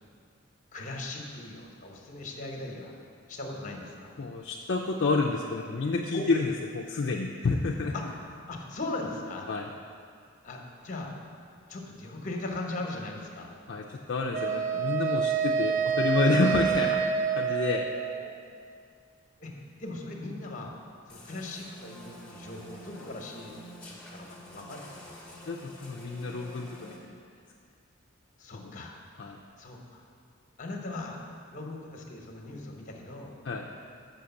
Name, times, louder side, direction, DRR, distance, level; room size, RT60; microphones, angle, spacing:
voice 1, 0.7-3.0 3.3-4.1 6.1-6.3 7.9-8.0 8.5-9.5 10.4-11.1 11.7-13.5 18.2-18.3 19.4-19.5 19.8-20.7 21.1-25.4 28.4-28.9 29.6-30.0 30.6-33.3, left 2 dB, 35° left, 1 dB, 1.0 m, -39 dB
voice 2, 4.2-7.9 9.5-9.7 13.7-17.0 17.4-17.9 25.5-27.2 28.5-28.8 29.2-29.4 33.4-33.7, left 3 dB, 55° left, -1 dB, 0.4 m, -29 dB
Wind instrument woodwind instrument, 14.3-18.5, right 7 dB, 35° right, 0.3 m, -28 dB
sound 1, 21.1-27.0, equal, 5° left, 1.0 m, -48 dB
6.4 x 5.7 x 7.0 m, 2.3 s
head